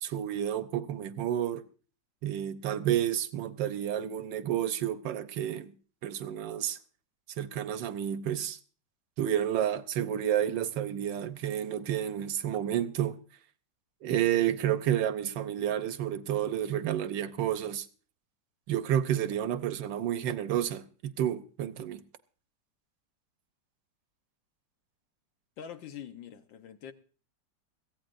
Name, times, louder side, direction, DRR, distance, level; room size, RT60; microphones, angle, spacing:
voice 1, 0.0-1.6 2.2-5.7 6.0-6.8 7.4-8.6 9.2-13.2 14.0-17.9 18.7-22.0, right 10 dB, 75° right, 1.5 m, -30 dB
voice 2, 25.6-26.9, left 8 dB, 85° left, 1.7 m, -44 dB
22.0 x 16.0 x 2.6 m
omnidirectional pair, 2.0 m